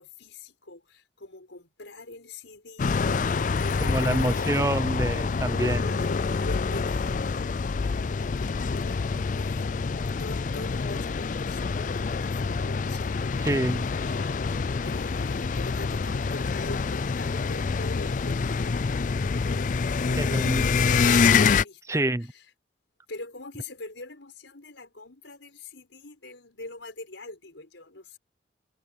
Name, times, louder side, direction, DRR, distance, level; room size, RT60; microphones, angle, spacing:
voice 1, 0.0-4.9 5.4-22.4 23.1-28.2, left 2 dB, 90° left, 5.5 m, -43 dB
sound 1, 2.8-21.6, left 5 dB, 45° left, 0.4 m, -26 dB
voice 2, 3.8-5.8 13.4-13.8 20.2-20.7 21.9-22.3, right 1 dB, 15° right, 0.7 m, -27 dB
head